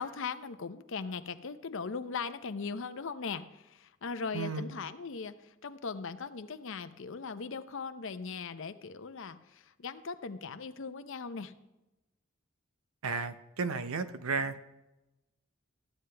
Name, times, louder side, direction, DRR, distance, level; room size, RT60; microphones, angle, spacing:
voice 1, 0.0-11.5, left 5 dB, 65° left, 11 dB, 0.6 m, -39 dB
voice 2, 4.3-4.7 13.0-14.6, right 4 dB, 90° right, 12 dB, 0.7 m, -33 dB
13.0 x 9.5 x 3.4 m, 0.99 s
head